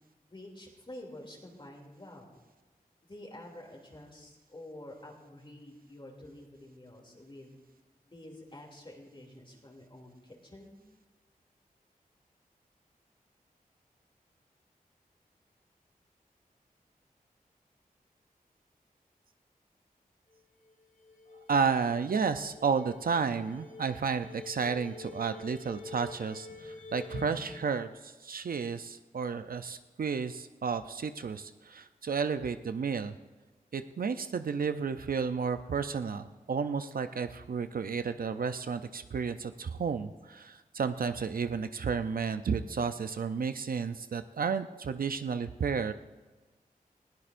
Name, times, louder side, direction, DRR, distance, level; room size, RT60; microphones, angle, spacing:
voice 1, 0.2-2.3 3.1-7.6 8.0-10.8, left 1 dB, 30° left, 0 dB, 2.8 m, -49 dB
sound 1, 20.3-20.4 20.7-20.8 21.0-27.7, left 3 dB, 60° left, 2.6 m, -47 dB
voice 2, 21.5-33.1 33.7-45.9, right 5 dB, 70° right, 10 dB, 0.5 m, -32 dB
20.5 x 15.0 x 2.6 m, 1.2 s
wide cardioid pair, 65°, 15 cm